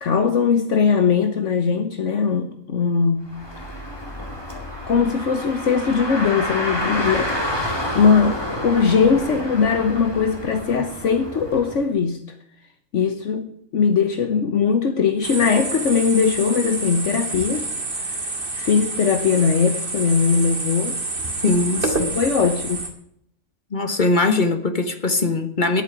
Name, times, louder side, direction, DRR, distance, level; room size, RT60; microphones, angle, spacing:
voice 1, 0.0-3.3 4.9-7.3 7.6-12.2 12.9-17.7 18.5-21.0 22.2-22.8, left 6 dB, 65° left, 1.3 m, -20 dB
Car, 3.2-11.8, left 1 dB, 20° left, 2.3 m, -29 dB
sound 1, 15.2-22.9, right 2 dB, 45° right, 2.2 m, -28 dB
voice 2, 21.4-22.2 23.7-25.8, left 3 dB, 35° left, 1.5 m, -21 dB
10.5 x 8.8 x 9.5 m
omnidirectional pair, 1.4 m